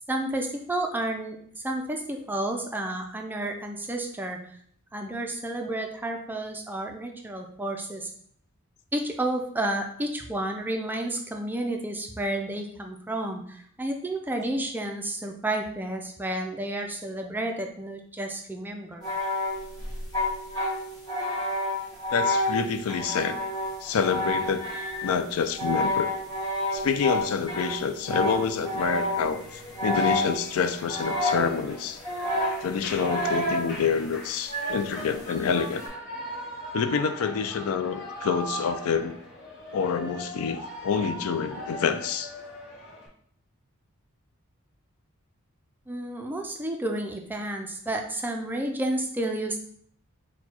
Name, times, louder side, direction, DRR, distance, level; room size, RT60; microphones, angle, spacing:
voice 1, 0.1-1.4 1.6-4.4 4.9-8.1 8.9-19.1 45.9-49.6, right 1 dB, 10° right, 3 dB, 0.3 m, -31 dB
sound 1, 19.0-29.4 29.8-30.6 30.9-31.7 32.0-33.7 34.5-35.9, left 1 dB, 20° left, 1.2 m, -29 dB
voice 2, 22.1-23.4 23.8-24.7 25.0-26.1 26.7-32.0 32.6-35.8 36.7-39.2 39.7-42.3, left 6 dB, 75° left, 9 dB, 0.4 m, -27 dB
Shout / Cheering, 29.2-43.1, equal, 55° left, 0.9 m, -40 dB
4.4 x 2.2 x 4.2 m, 0.62 s
head